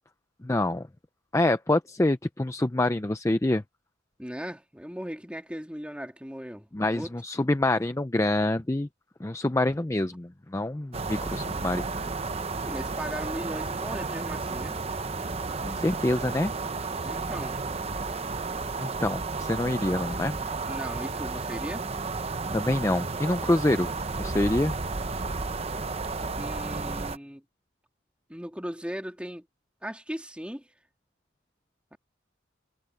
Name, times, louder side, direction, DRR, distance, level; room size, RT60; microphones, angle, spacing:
voice 1, 0.4-0.9 1.3-3.6 6.7-8.9 9.2-11.9 15.6-16.5 18.8-20.5 22.5-23.9 24.2-24.7, left 1 dB, 15° left, 0.5 m, -26 dB
voice 2, 4.2-7.1 12.6-14.8 17.0-17.6 20.6-21.8 26.4-27.4 28.3-29.5 29.8-30.7 31.9-32.0, equal, 5° right, 3.0 m, -38 dB
sound 1, 10.9-27.2, right 3 dB, 30° right, 0.8 m, -32 dB
head